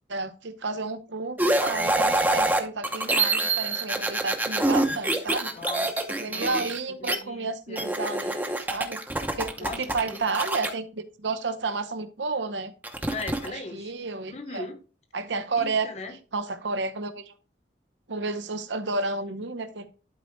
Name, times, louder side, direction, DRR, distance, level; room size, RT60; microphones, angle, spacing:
voice 1, 0.1-5.5 6.2-9.0 9.4-12.7 13.5-14.7 15.1-15.9 16.3-17.3 18.1-19.9, right 3 dB, 80° right, 0.8 m, -31 dB
sound 1, 1.4-7.2 7.8-10.7 12.8-13.5, right 2 dB, 10° right, 0.7 m, -26 dB
voice 2, 5.5-6.7 7.0-7.9 9.6-10.3 13.1-13.9 14.3-14.8 15.5-16.1, left 3 dB, 35° left, 1.0 m, -38 dB
11.5 x 4.3 x 3.2 m
head